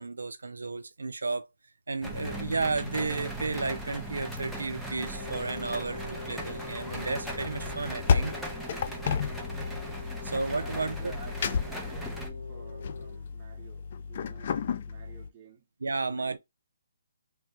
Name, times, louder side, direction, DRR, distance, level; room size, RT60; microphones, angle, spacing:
voice 1, 0.0-1.5 1.9-8.3 10.2-11.1 15.8-16.4, right 3 dB, 85° right, 0.3 m, -33 dB
sound 1, 2.0-12.3, equal, ahead, 0.6 m, -38 dB
Wind instrument woodwind instrument, 5.1-13.2, left 3 dB, 80° left, 0.7 m, -44 dB
sound 2, 7.6-15.3, left 6 dB, 45° left, 0.4 m, -32 dB
voice 2, 10.6-15.6 16.0-16.4, right 4 dB, 25° right, 0.9 m, -51 dB
3.2 x 2.1 x 2.8 m
hypercardioid pair, 150°, 0 cm